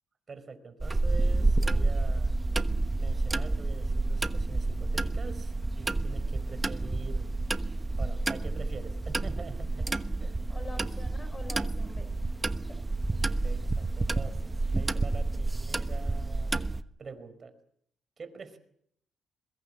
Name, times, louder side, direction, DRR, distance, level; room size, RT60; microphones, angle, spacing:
voice 1, 0.3-2.3 3.0-7.3 8.0-9.9 10.2-10.4 10.8-11.0 13.4-16.6 17.0-17.6 18.2-18.6, right 4 dB, 40° right, 11 dB, 4.7 m, -45 dB
sound 1, 0.8-16.8, right 2 dB, 20° right, 1.1 m, -29 dB
voice 2, 10.5-12.1 12.4-12.8, left 2 dB, 25° left, 11 dB, 3.7 m, -46 dB
22.5 x 22.0 x 7.6 m, 0.70 s
cardioid pair, 90°, 0 cm